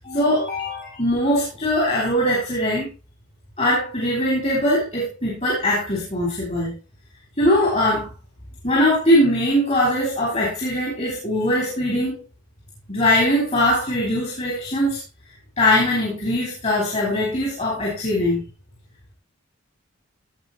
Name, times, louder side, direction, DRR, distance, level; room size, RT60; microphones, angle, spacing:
voice 1, 0.0-2.9 3.6-6.7 7.4-8.1 8.6-12.2 12.9-15.0 15.6-18.4, left 1 dB, 30° left, -3 dB, 4.3 m, -21 dB
17.0 x 5.9 x 4.2 m, 0.30 s
head